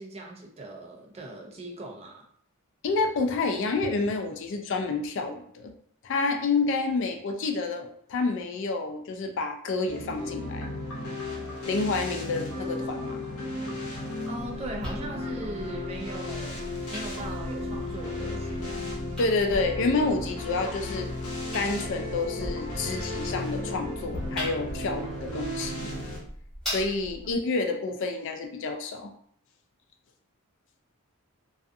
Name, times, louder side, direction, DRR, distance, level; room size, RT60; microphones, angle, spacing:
voice 1, 0.0-2.2 14.3-18.9, right 1 dB, 25° right, 0 dB, 0.4 m, -39 dB
voice 2, 2.8-5.7 6.0-10.7 11.7-13.2 19.2-21.1 21.5-25.9 26.7-29.1, left 3 dB, 55° left, 5 dB, 0.3 m, -29 dB
sound 1, 9.9-26.2, left 2 dB, 80° left, 0.8 m, -34 dB
sound 2, 14.4-27.4, equal, ahead, 1.2 m, -41 dB
2.4 x 2.4 x 2.5 m, 0.63 s
head